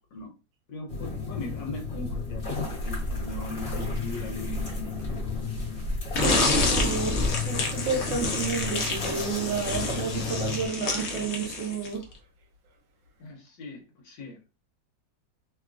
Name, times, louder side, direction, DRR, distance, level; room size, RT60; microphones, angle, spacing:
voice 1, 0.7-4.7 7.4-7.5 13.2-14.4, left 2 dB, 75° left, 1.5 m, -40 dB
sound 1, 0.9-10.7, left 5 dB, 35° left, 1.4 m, -34 dB
sound 2, 1.9-9.8, left 1 dB, 55° right, 1.2 m, -34 dB
sound 3, 6.1-12.0, left 3 dB, 60° left, 0.7 m, -28 dB
voice 2, 6.1-12.0, right 5 dB, 75° right, 1.4 m, -31 dB
3.5 x 2.3 x 2.5 m
omnidirectional pair, 2.0 m